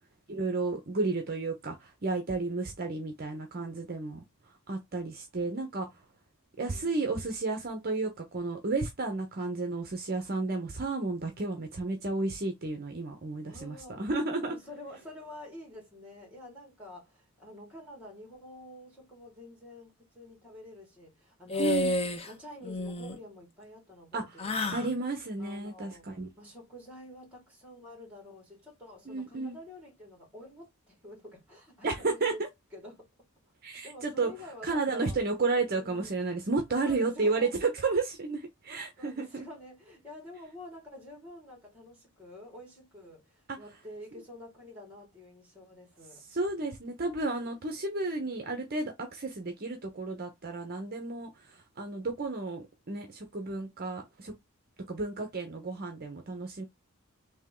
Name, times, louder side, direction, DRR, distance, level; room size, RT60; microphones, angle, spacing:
voice 1, 0.3-4.2 4.7-5.9 6.6-14.5 21.6-21.9 24.1-24.2 24.7-26.3 29.1-29.6 31.8-32.3 33.6-34.3 34.6-39.5 43.5-43.6 46.3-54.3 54.9-56.6, right 3 dB, 45° right, 0.6 m, -32 dB
voice 2, 6.6-7.3 13.5-14.1 14.4-21.9 22.3-24.9 25.4-26.1 26.4-32.4 32.7-33.1 33.8-35.2 35.6-36.1 36.7-37.5 39.0-46.2, left 1 dB, 5° right, 2.0 m, -48 dB
sound 1, 21.5-22.3 22.6-23.2 24.4-24.9, left 2 dB, 25° left, 0.5 m, -30 dB
3.5 x 2.7 x 3.6 m
head